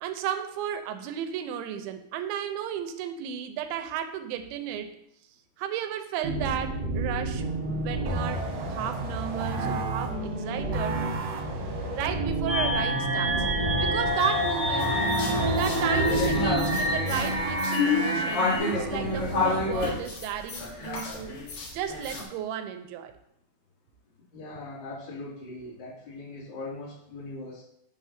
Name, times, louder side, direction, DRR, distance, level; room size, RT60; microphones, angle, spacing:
voice 1, 0.0-4.9 5.6-11.1 11.9-13.5 13.8-15.1 15.5-21.4 21.7-23.1, right 9 dB, 85° right, 7 dB, 2.4 m, -34 dB
sound 1, 6.2-19.6, right 2 dB, 70° right, 1.7 m, -31 dB
sound 2, 12.5-18.6, equal, 30° right, 0.8 m, -28 dB
sound 3, 14.8-22.2, left 3 dB, 85° left, 1.2 m, -30 dB
voice 2, 24.3-27.6, left 2 dB, 55° left, -14 dB, 3.5 m, -40 dB
7.4 x 3.1 x 5.7 m, 0.73 s
omnidirectional pair, 4.3 m